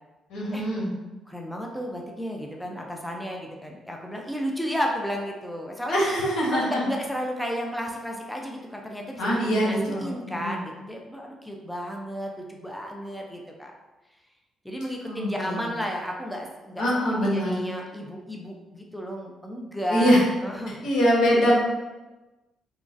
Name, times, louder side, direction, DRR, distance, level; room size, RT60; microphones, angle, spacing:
voice 1, 0.3-0.9 5.9-6.8 9.2-10.1 10.4-10.6 15.1-15.7 16.8-17.6 19.9-20.2 20.8-21.5, equal, 80° left, -4 dB, 0.8 m, -23 dB
voice 2, 1.3-6.0 6.5-13.7 14.6-16.9 17.2-20.2 20.4-20.8, equal, 5° left, 0 dB, 0.4 m, -33 dB
3.0 x 2.3 x 2.5 m, 1.1 s
cardioid pair, 90°, 0 cm